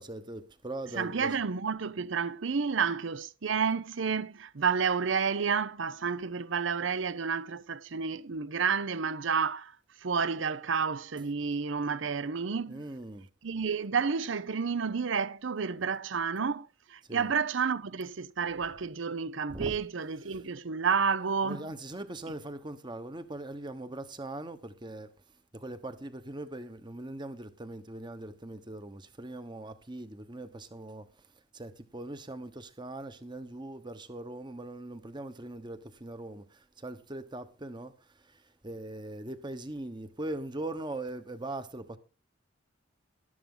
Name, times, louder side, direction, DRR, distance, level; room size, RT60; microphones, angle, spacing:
voice 1, 0.0-1.3 11.2-11.5 12.7-13.3 17.1-17.3 19.5-19.8 20.3-20.4 21.4-25.1 25.5-31.1 31.5-36.4 36.8-37.9 38.6-42.0, right 2 dB, 20° right, 1.1 m, -41 dB
voice 2, 1.0-9.7 10.0-12.8 13.4-21.6, right 5 dB, 65° right, 0.7 m, -30 dB
12.5 x 12.5 x 3.9 m
head